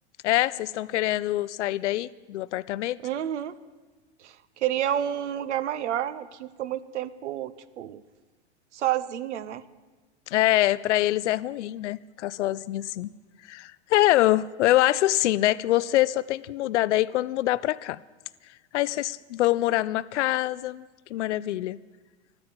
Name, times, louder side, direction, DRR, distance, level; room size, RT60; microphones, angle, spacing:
voice 1, 0.2-3.0 10.3-13.1 13.4-18.0 18.7-20.8 21.1-21.8, left 15 dB, 80° left, 18 dB, 0.5 m, -24 dB
voice 2, 3.0-3.5 4.2-8.0 8.7-9.6, right 11 dB, 85° right, 16 dB, 0.9 m, -30 dB
13.5 x 9.7 x 8.8 m, 1.3 s
hypercardioid pair, 110°, 35 cm